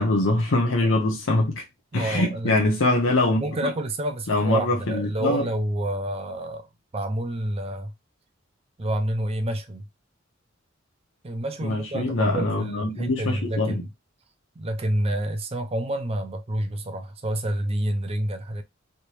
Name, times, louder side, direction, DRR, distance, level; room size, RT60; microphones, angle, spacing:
voice 1, 0.0-1.6 1.9-3.4 4.3-5.5 11.6-13.8, left 2 dB, 80° left, 0.7 m, -23 dB
voice 2, 1.9-2.5 3.4-7.9 8.8-9.9 11.2-13.9 14.6-18.6, right 1 dB, 30° right, 0.5 m, -28 dB
3.3 x 2.8 x 3.0 m
head